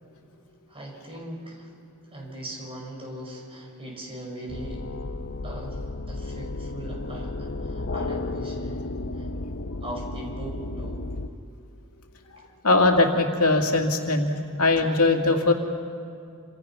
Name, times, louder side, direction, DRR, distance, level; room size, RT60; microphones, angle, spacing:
voice 1, 0.7-1.7 2.1-4.8 5.4-9.3 9.8-11.0, right 1 dB, 25° right, 0 dB, 5.7 m, -39 dB
sound 1, 4.5-11.3, left 2 dB, 60° left, 0.8 m, -33 dB
voice 2, 12.6-14.3 14.6-15.5, left 2 dB, 80° left, 3 dB, 2.4 m, -20 dB
28.5 x 26.5 x 5.8 m, 2.5 s
head